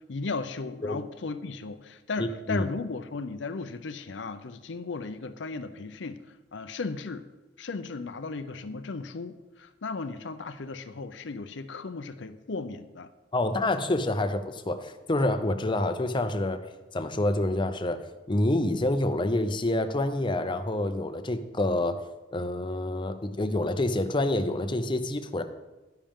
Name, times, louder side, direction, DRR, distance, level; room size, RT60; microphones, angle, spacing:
voice 1, 0.1-6.2 6.5-7.2 7.6-13.1, left 4 dB, 75° left, 11 dB, 0.6 m, -36 dB
voice 2, 2.2-2.7 13.3-16.6 16.9-22.0 22.3-25.4, left 1 dB, 25° left, 8 dB, 0.7 m, -27 dB
11.5 x 10.0 x 3.7 m, 1.1 s
head